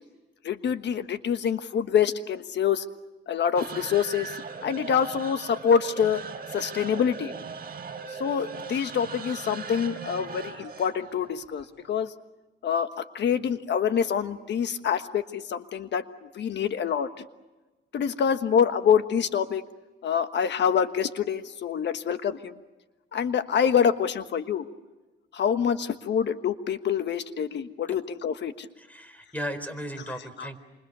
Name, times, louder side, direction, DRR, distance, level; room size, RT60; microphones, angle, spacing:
voice 1, 0.4-2.9 3.3-4.3 4.6-6.2 6.5-7.3 8.2-12.1 12.6-17.1 17.9-19.6 20.0-22.6 23.1-24.7 25.3-28.7 30.4-30.5, left 7 dB, 60° left, 10 dB, 1.4 m, -26 dB
sound 1, 3.6-12.0, right 5 dB, 45° right, 3.9 m, -39 dB
voice 2, 28.8-30.6, equal, 10° left, 10 dB, 4.5 m, -36 dB
27.5 x 26.0 x 6.9 m, 1.2 s
cardioid pair, 90°, 20 cm